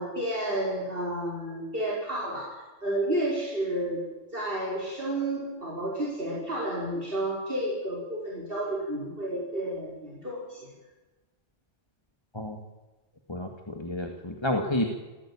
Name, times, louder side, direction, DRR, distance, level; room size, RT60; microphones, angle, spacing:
voice 1, 0.0-4.1 4.3-10.6, right 1 dB, 45° right, -5 dB, 6.0 m, -31 dB
voice 2, 13.3-14.9, left 1 dB, 20° left, 4 dB, 2.3 m, -30 dB
27.5 x 16.5 x 8.9 m, 1.2 s
omnidirectional pair, 1.3 m